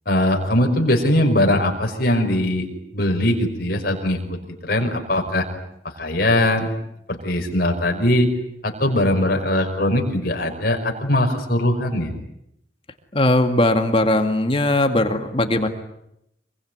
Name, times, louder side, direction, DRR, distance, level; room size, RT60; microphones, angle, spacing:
voice 1, 0.1-2.7 2.9-5.5 6.0-6.7 7.1-8.3 8.6-12.1, left 1 dB, 50° left, 2 dB, 5.6 m, -20 dB
voice 2, 13.1-15.7, left 1 dB, 30° left, 6 dB, 2.2 m, -19 dB
26.0 x 23.5 x 9.5 m, 0.80 s
head